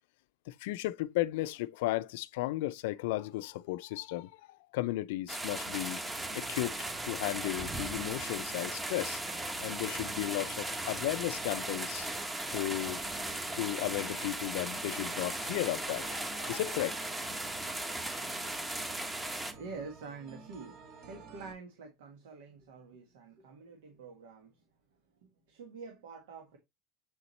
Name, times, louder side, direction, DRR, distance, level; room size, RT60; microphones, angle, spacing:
voice 1, 0.5-6.0 6.3-9.2 9.6-12.1 12.5-13.0 13.5-17.0, left 17 dB, 80° left, 0.4 m, -35 dB
sound 1, 5.3-19.5, right 1 dB, 15° right, 1.2 m, -37 dB
sound 2, 5.5-21.5, right 4 dB, 50° right, 1.9 m, -53 dB
voice 2, 19.1-24.6 25.2-26.6, right 4 dB, 90° right, 1.5 m, -47 dB
7.8 x 4.0 x 3.2 m
supercardioid pair, 115°, 0 cm